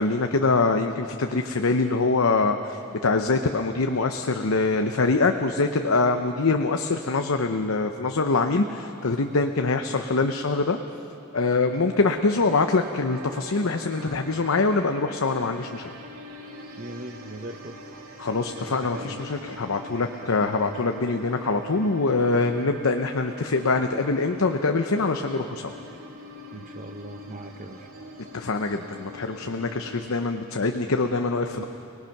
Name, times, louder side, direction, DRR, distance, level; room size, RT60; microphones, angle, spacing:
voice 1, 0.0-10.8 11.3-15.9 18.2-25.7 28.3-31.6, left 3 dB, 65° left, 6 dB, 0.8 m, -24 dB
sound 1, 11.9-30.0, equal, 80° right, 2.4 m, -43 dB
voice 2, 16.8-17.8 18.7-19.2 20.2-20.6 26.5-27.9 29.4-29.8 31.5-31.6, right 2 dB, 35° right, 4 dB, 0.8 m, -40 dB
30.0 x 19.5 x 5.9 m, 2.8 s
head